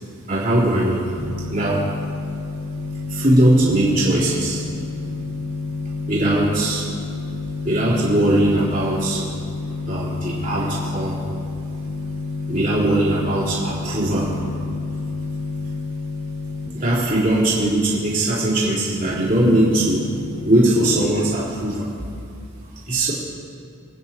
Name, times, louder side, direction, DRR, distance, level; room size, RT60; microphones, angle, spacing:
voice 1, 0.3-1.1 1.5-1.9 3.1-4.6 6.1-6.9 7.6-9.2 9.9-11.2 12.5-14.3 16.7-20.1 20.4-21.9 22.9-23.1, right 1 dB, 40° right, -8 dB, 3.5 m, -20 dB
sound 1, 1.2-16.7 19.0-21.1, left 3 dB, 65° left, 1.8 m, -30 dB
28.0 x 9.5 x 2.9 m, 2.4 s
head